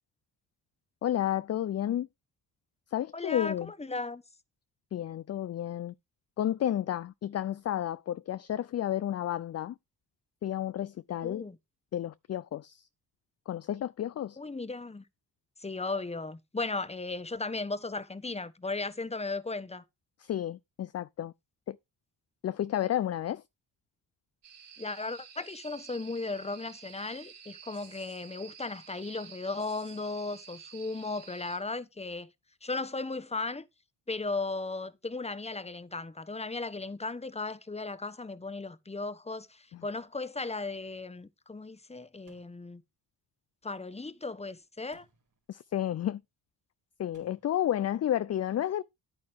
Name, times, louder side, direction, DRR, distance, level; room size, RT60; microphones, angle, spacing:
voice 1, 1.0-2.1 2.9-3.7 4.9-5.9 6.4-9.7 10.4-11.5 11.9-12.8 13.5-14.4 20.2-21.3 21.7-21.8 22.4-23.4 45.5-46.2 47.0-48.8, left 11 dB, 40° left, 0.4 m, -31 dB
voice 2, 3.1-4.2 11.2-11.6 14.4-15.0 15.6-19.8 24.8-32.3 32.6-33.7 34.1-42.8 43.6-45.1, left 3 dB, 15° left, 1.1 m, -36 dB
sound 1, 24.4-31.6, right 7 dB, 75° right, 3.8 m, -51 dB
sound 2, 42.3-42.8 44.9-45.5 47.1-47.6, right 4 dB, 50° right, 3.7 m, -63 dB
9.4 x 8.9 x 3.5 m
supercardioid pair, 65°, 42 cm